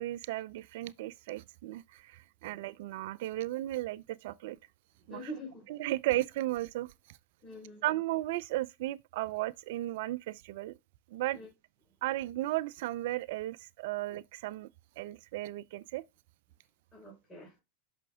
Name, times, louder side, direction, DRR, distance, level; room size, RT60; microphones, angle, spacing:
voice 1, 0.0-4.6 5.1-5.2 5.7-7.2 7.8-10.7 11.1-11.4 12.0-14.7 15.0-16.0, right 16 dB, 65° right, 0.5 m, -35 dB
voice 2, 5.0-5.7 7.4-7.8 11.3-11.5 11.9-12.0 16.9-17.5, equal, 20° left, 3.9 m, -45 dB
6.0 x 5.8 x 3.5 m
hypercardioid pair, 100°, 0 cm